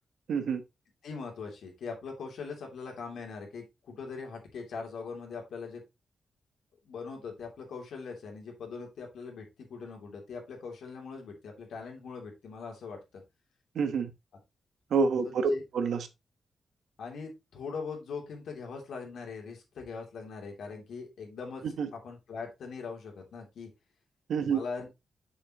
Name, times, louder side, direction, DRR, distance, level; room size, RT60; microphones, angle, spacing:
voice 1, 0.3-0.6 13.7-14.1 14.9-16.1 21.8-21.9 24.3-24.6, right 5 dB, 70° right, 1.1 m, -27 dB
voice 2, 1.0-5.8 6.8-13.0 15.2-15.6 17.0-21.6 21.9-23.7 24.5-24.9, left 5 dB, 75° left, 2.9 m, -41 dB
7.1 x 6.9 x 2.9 m
wide cardioid pair, 160°, 0 cm